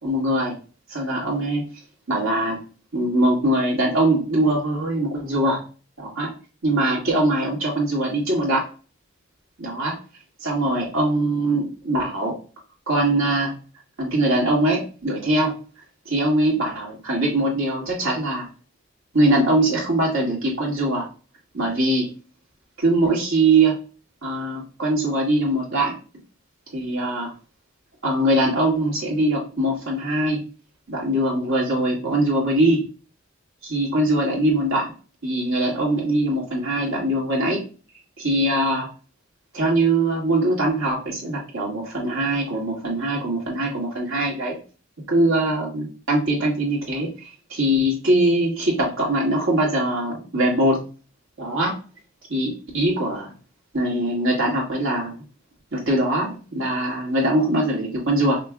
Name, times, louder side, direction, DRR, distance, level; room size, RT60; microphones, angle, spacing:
voice 1, 0.0-0.5 0.9-1.7 2.1-2.6 2.9-5.6 6.0-6.3 6.6-8.6 9.6-10.0 10.4-12.3 12.9-13.5 14.0-15.5 16.1-18.5 19.1-21.1 21.5-22.1 22.8-23.8 24.2-25.9 26.7-27.3 28.0-30.4 30.9-32.8 33.6-34.9 35.2-37.6 38.2-38.9 39.5-44.6 45.1-50.8 51.4-51.8 52.3-53.3 53.7-55.1 55.7-58.4, right 1 dB, 75° right, -4 dB, 2.1 m, -22 dB
5.8 x 3.3 x 2.4 m, 0.35 s
head